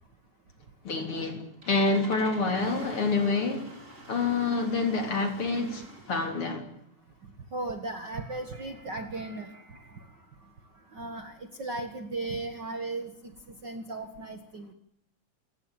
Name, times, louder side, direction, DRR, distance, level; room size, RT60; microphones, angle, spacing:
voice 1, 0.8-3.7 4.1-6.7, left 3 dB, 45° left, 4.3 m, -27 dB
Engine starting, 1.4-6.3, right 1 dB, 25° right, 4.8 m, -48 dB
voice 2, 7.5-10.1 10.4-10.5 10.9-13.3 13.6-14.7, right 2 dB, 40° right, 1.9 m, -36 dB
29.0 x 16.0 x 9.0 m
omnidirectional pair, 3.4 m